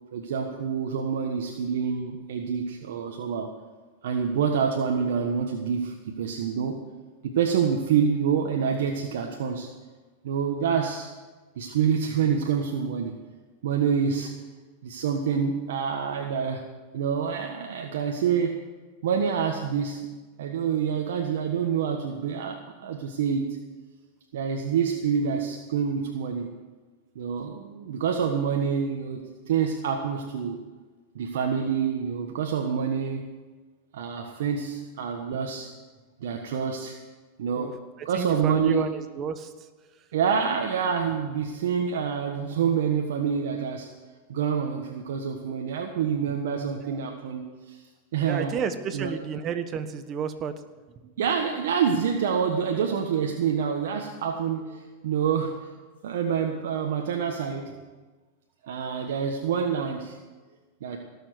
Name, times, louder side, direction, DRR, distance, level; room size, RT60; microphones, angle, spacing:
voice 1, 0.1-3.5 4.0-6.8 7.2-9.7 10.2-11.1 11.6-13.2 13.6-14.3 14.8-16.6 16.9-18.6 19.0-20.0 20.4-23.5 24.3-26.5 27.1-30.6 31.1-33.2 33.9-35.7 36.2-37.0 37.4-37.8 38.0-38.9 40.1-43.9 44.3-47.8 48.1-48.5 48.9-49.1 51.2-55.6 56.0-57.7 58.6-60.2 60.8-61.0, right 7 dB, 75° right, 2 dB, 1.4 m, -27 dB
voice 2, 38.0-39.5 46.3-46.4 46.8-47.0 48.2-50.5 51.0-51.1, right 7 dB, 35° right, 10 dB, 1.2 m, -31 dB
17.5 x 7.2 x 8.0 m, 1.3 s
hypercardioid pair, 120°, 0 cm